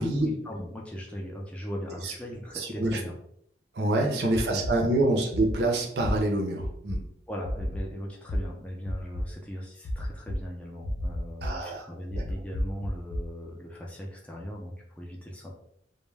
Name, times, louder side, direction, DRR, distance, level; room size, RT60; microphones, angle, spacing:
voice 1, 0.0-3.1 4.0-4.9 7.3-15.5, equal, 5° left, -2 dB, 0.4 m, -38 dB
voice 2, 2.5-3.0 3.7-7.0 11.4-11.8, right 2 dB, 55° right, 1 dB, 0.5 m, -26 dB
sound 1, 4.3-4.7 5.3-5.6 6.0-6.1 6.6-7.0 7.4-7.8 8.3-8.4 8.8-9.2 9.8-10.4 10.8-11.5 12.1-13.2, equal, 65° left, 0.4 m, -30 dB
2.2 x 2.1 x 3.2 m, 0.72 s
head